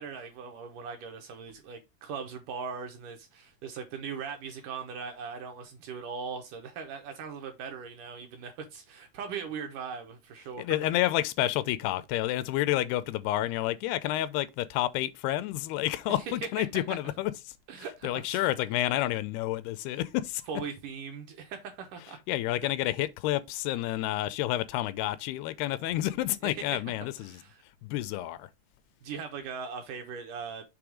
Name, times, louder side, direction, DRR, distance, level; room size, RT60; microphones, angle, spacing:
voice 1, 0.0-10.8 16.1-16.7 17.7-18.5 20.5-22.2 26.4-27.6 29.0-30.6, right 6 dB, 70° right, 2.1 m, -40 dB
voice 2, 10.6-17.5 18.0-20.4 22.3-27.4 27.8-28.5, left 14 dB, 90° left, 2.6 m, -29 dB
7.0 x 3.4 x 4.9 m
omnidirectional pair, 4.5 m